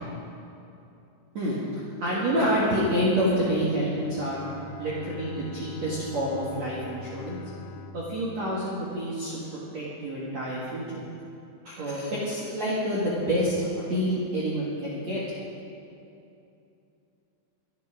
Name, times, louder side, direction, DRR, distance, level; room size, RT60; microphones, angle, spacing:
voice 1, 2.0-4.4 4.8-7.4 7.9-11.0 11.6-15.2, equal, 45° right, -7 dB, 2.7 m, -28 dB
Bowed string instrument, 3.8-9.7, left 6 dB, 90° left, 3.3 m, -45 dB
25.0 x 8.7 x 5.1 m, 2.7 s
omnidirectional pair, 5.3 m